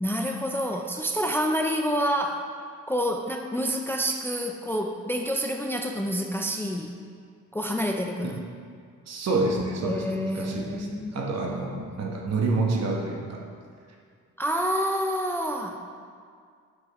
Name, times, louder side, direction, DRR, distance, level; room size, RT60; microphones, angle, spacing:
voice 1, 0.0-2.5 2.9-6.9 7.5-8.4 9.8-11.2 14.4-15.8, equal, 5° left, 3 dB, 0.4 m, -28 dB
voice 2, 9.1-10.9 11.1-13.4, right 3 dB, 60° right, 0 dB, 1.3 m, -28 dB
7.1 x 5.7 x 4.1 m, 2.1 s
cardioid pair, 90°, 30 cm